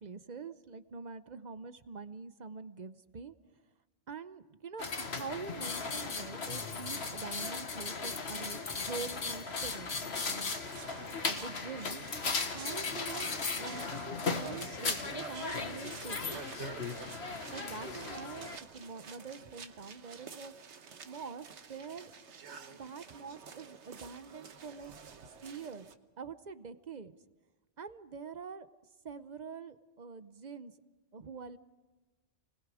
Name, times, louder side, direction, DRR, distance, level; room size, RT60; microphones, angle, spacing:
voice 1, 0.0-3.3 4.1-9.9 10.2-10.6 11.2-12.1 12.5-13.3 13.6-16.4 17.5-20.5 21.0-22.1 22.7-24.9 25.4-25.9 26.2-27.1 27.8-28.7 29.0-30.7 31.1-31.6, right 5 dB, 40° right, 13 dB, 0.8 m, -45 dB
sound 1, 4.8-18.6, left 4 dB, 60° left, 1.7 m, -37 dB
sound 2, 10.6-25.9, right 6 dB, 70° right, 1.4 m, -49 dB
29.5 x 20.5 x 4.9 m, 1.3 s
omnidirectional pair, 1.2 m